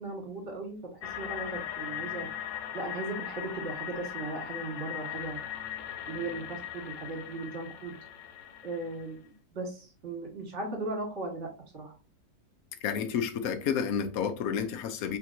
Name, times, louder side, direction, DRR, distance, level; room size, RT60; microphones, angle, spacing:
voice 1, 0.0-2.3 2.7-5.4 6.1-7.9 8.6-9.2 9.5-12.0, right 2 dB, 45° right, 1.8 m, -37 dB
sound 1, 1.0-9.0, left 10 dB, 85° left, 1.3 m, -39 dB
voice 2, 12.8-15.2, left 7 dB, 65° left, 1.0 m, -30 dB
4.4 x 3.4 x 2.6 m
omnidirectional pair, 1.9 m